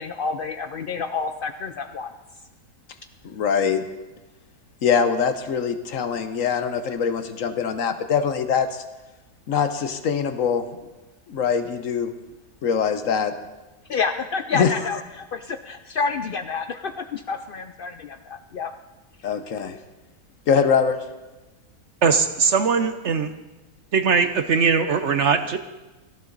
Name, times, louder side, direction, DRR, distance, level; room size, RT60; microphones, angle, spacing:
voice 1, 0.0-2.1 13.9-18.7, left 5 dB, 85° left, 8 dB, 0.4 m, -29 dB
voice 2, 3.2-3.8 4.8-8.8 9.5-10.6 11.3-12.1 12.6-13.3 14.5-14.7 19.2-19.8 20.5-21.0, left 6 dB, 60° left, 10 dB, 1.2 m, -23 dB
voice 3, 22.0-23.3 23.9-25.6, right 5 dB, 55° right, 9 dB, 0.9 m, -20 dB
18.0 x 14.0 x 4.0 m, 1.1 s
omnidirectional pair, 1.7 m